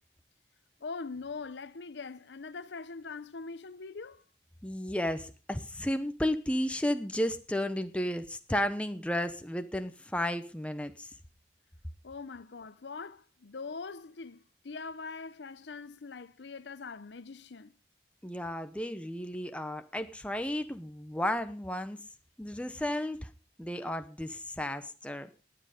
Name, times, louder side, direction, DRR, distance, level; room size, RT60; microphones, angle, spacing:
voice 1, 0.8-4.2 12.0-17.8, left 4 dB, 85° left, 0.7 m, -42 dB
voice 2, 4.6-11.1 18.2-22.0 22.4-23.3 23.6-25.3, left 1 dB, 5° left, 0.8 m, -33 dB
20.0 x 7.8 x 5.0 m
head